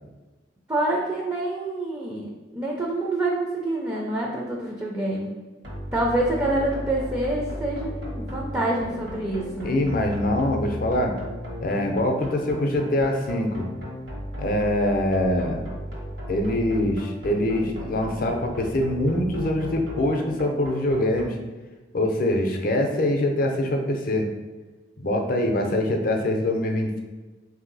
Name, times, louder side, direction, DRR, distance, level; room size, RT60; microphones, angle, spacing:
voice 1, 0.7-5.3 5.9-9.8, right 1 dB, 15° right, -3 dB, 0.5 m, -27 dB
sound 1, 5.6-21.2, equal, 70° right, 1.3 m, -36 dB
voice 2, 9.6-11.1 11.6-13.7 14.4-15.6 16.3-21.4 21.9-24.3 25.0-27.0, left 1 dB, 50° left, 3 dB, 0.6 m, -24 dB
4.0 x 2.7 x 3.9 m, 1.3 s
head